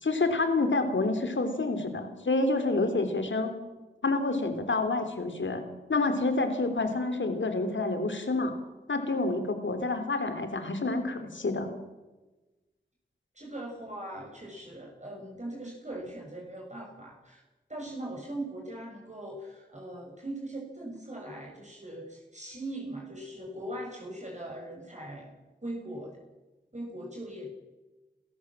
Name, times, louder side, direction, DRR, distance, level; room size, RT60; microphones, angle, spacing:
voice 1, 0.0-3.5 4.0-5.6 5.9-8.5 8.9-11.7, left 3 dB, 85° left, 8 dB, 3.2 m, -28 dB
voice 2, 13.3-17.4 17.7-25.3 25.6-26.2 26.7-27.5, right 1 dB, 40° right, -1 dB, 6.4 m, -40 dB
29.0 x 14.0 x 7.5 m, 1.1 s
wide cardioid pair, 45°, 19 cm